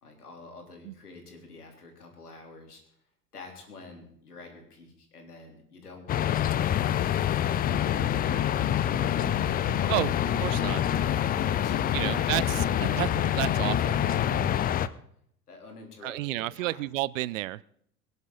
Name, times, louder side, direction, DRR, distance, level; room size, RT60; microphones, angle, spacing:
voice 1, 0.0-2.8 3.3-6.5 7.1-7.3 7.6-9.1 9.8-10.2 10.5-10.8 11.4-13.5 15.5-16.9, left 3 dB, 80° left, 2 dB, 3.7 m, -47 dB
sound 1, 6.1-14.9, left 11 dB, 20° left, 0.5 m, -26 dB
sound 2, 7.6-14.5, left 7 dB, 35° left, 2.5 m, -36 dB
voice 2, 10.4-10.8 11.9-12.6 12.9-13.1 13.4-14.0 16.0-17.6, right 17 dB, 55° right, 21 dB, 0.6 m, -30 dB
23.0 x 11.0 x 4.0 m, 0.66 s
figure-of-eight pair, 75°, 45 cm